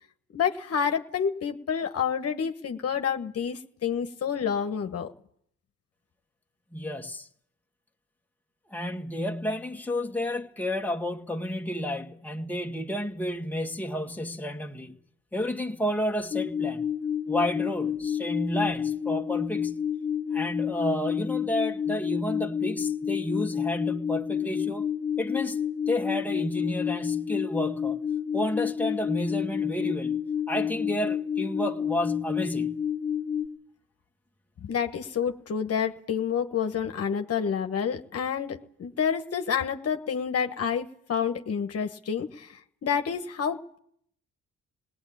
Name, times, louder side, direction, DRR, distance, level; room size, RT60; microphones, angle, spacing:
voice 1, 0.3-5.1 34.6-43.8, left 7 dB, 55° left, 1.4 m, -29 dB
voice 2, 6.7-7.3 8.7-15.0 15.3-16.8 17.3-19.8 20.3-24.9 25.2-25.6 25.9-28.0 28.3-30.2 30.5-32.8, equal, 5° left, 1.8 m, -31 dB
sound 1, 16.3-33.5, left 8 dB, 25° left, 1.1 m, -29 dB
19.0 x 19.0 x 8.6 m
cardioid pair, 90°, 30 cm